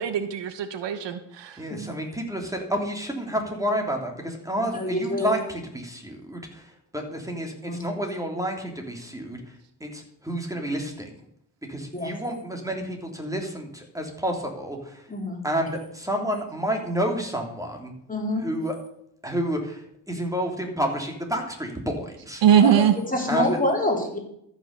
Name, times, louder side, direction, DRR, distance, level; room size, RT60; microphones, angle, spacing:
voice 1, 0.0-1.6 22.4-23.0, right 9 dB, 75° right, 10 dB, 1.1 m, -21 dB
voice 2, 1.6-9.4 9.8-11.1 11.7-15.1 15.4-17.9 18.4-18.8 19.2-22.4 23.3-23.5, equal, 5° right, 2 dB, 3.3 m, -30 dB
voice 3, 4.6-5.4 7.7-7.8 11.9-12.1 15.1-15.4 18.1-18.4 22.6-22.8 23.1-24.2, left 1 dB, 20° left, 1 dB, 3.7 m, -26 dB
13.5 x 6.4 x 6.8 m, 0.73 s
cardioid pair, 70°, 44 cm